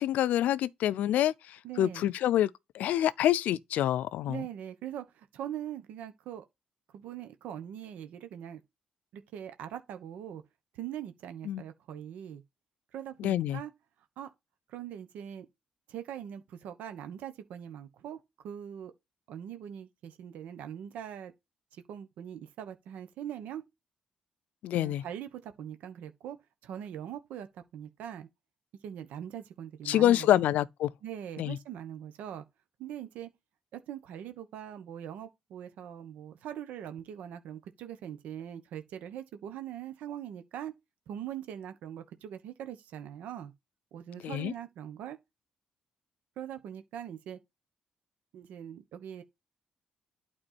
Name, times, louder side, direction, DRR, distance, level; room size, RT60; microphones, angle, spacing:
voice 1, 0.0-2.5 2.7-4.4 11.5-11.6 13.2-13.6 24.6-25.0 29.9-30.9 31.4-31.6 44.2-44.5, left 12 dB, 85° left, 0.4 m, -27 dB
voice 2, 1.6-2.1 4.3-6.4 6.9-8.6 9.1-10.4 10.7-12.4 12.9-13.7 14.2-14.3 14.7-15.5 15.9-18.9 19.3-21.3 21.7-23.6 24.7-26.4 26.6-28.3 28.8-30.4 31.0-32.4 32.8-33.3 33.7-40.7 41.1-43.5 43.9-45.2 46.4-47.4 48.3-49.2, right 10 dB, 90° right, 1.0 m, -42 dB
8.9 x 4.3 x 4.2 m
cardioid pair, 80°, 3 cm